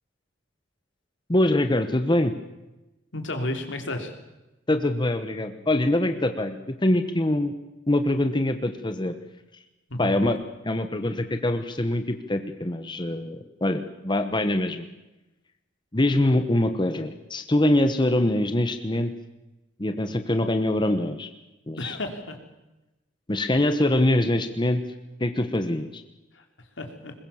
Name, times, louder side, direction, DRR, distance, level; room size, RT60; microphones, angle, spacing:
voice 1, 1.3-2.3 4.7-7.5 7.9-9.1 10.0-10.4 10.6-14.8 15.9-19.1 19.8-21.3 21.7-22.0 23.3-24.8 25.2-26.0, left 1 dB, 25° left, 8 dB, 1.1 m, -24 dB
voice 2, 3.1-4.1 9.9-10.2 21.8-22.4 26.3-26.4 26.8-27.1, left 1 dB, 80° left, 5 dB, 3.3 m, -32 dB
21.5 x 21.0 x 7.2 m, 0.99 s
head